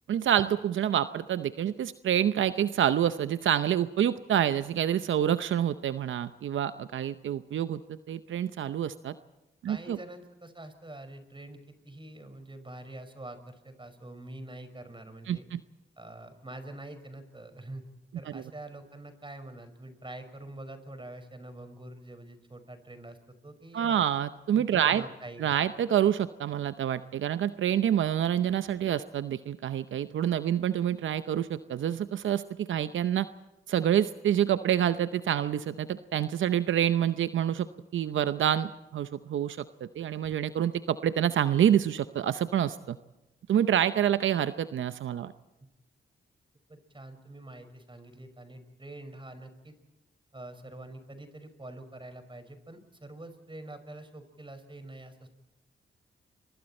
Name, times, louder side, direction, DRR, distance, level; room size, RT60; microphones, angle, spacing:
voice 1, 0.1-9.1 9.6-10.0 15.3-15.6 18.3-18.4 23.7-25.0 25.4-33.3 33.7-37.7 37.9-43.0 43.5-45.3, right 10 dB, 80° right, 12 dB, 0.7 m, -27 dB
voice 2, 9.7-15.4 16.0-17.8 18.2-24.0 24.5-25.4 46.7-49.7 50.3-55.3, right 1 dB, 25° right, 9 dB, 5.5 m, -45 dB
29.5 x 23.5 x 4.4 m, 1.0 s
cardioid pair, 55°, 20 cm